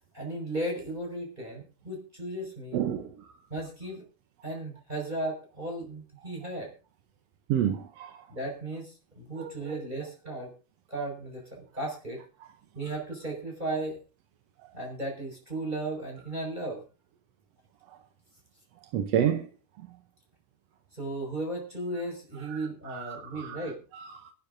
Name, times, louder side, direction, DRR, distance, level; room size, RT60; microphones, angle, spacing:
voice 1, 0.1-2.8 3.5-4.1 4.4-6.7 8.3-10.5 10.9-12.2 12.7-14.0 14.7-16.8 20.9-23.8, right 2 dB, 15° right, 5.6 m, -35 dB
voice 2, 2.7-3.3 7.5-8.2 9.4-9.8 18.9-19.5 22.4-22.6 22.9-24.3, right 9 dB, 70° right, 1.7 m, -30 dB
25.5 x 11.5 x 2.7 m
omnidirectional pair, 3.7 m